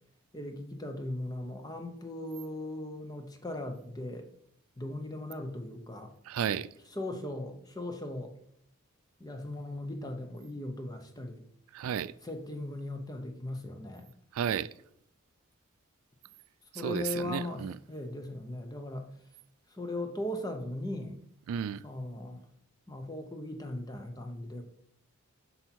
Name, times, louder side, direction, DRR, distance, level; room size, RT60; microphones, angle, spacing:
voice 1, 0.3-4.3 4.8-6.1 6.9-8.4 9.2-11.4 12.2-14.1 16.7-19.1 19.7-21.2 21.8-22.4 22.9-24.6, left 1 dB, 15° left, 0.8 m, -38 dB
voice 2, 6.3-6.7 11.7-12.1 14.3-14.7 16.7-17.8 21.5-21.8, right 8 dB, 75° right, 0.3 m, -33 dB
7.8 x 5.6 x 4.5 m
head